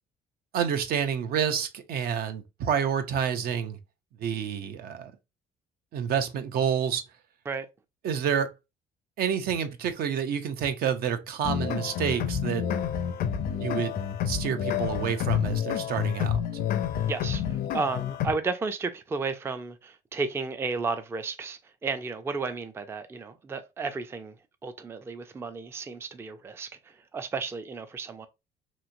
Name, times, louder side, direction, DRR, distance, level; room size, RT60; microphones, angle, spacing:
voice 1, 0.5-3.8 4.2-5.1 5.9-7.0 8.0-8.5 9.2-12.6 13.5-14.0 14.3-16.4, right 8 dB, 65° right, 0.5 m, -28 dB
sound 1, 11.4-18.3, left 9 dB, 60° left, 0.5 m, -29 dB
voice 2, 17.1-17.4 17.7-24.3 24.6-26.7 27.1-28.3, right 4 dB, 15° right, 0.3 m, -33 dB
3.0 x 2.8 x 2.5 m
cardioid pair, 110°, 17 cm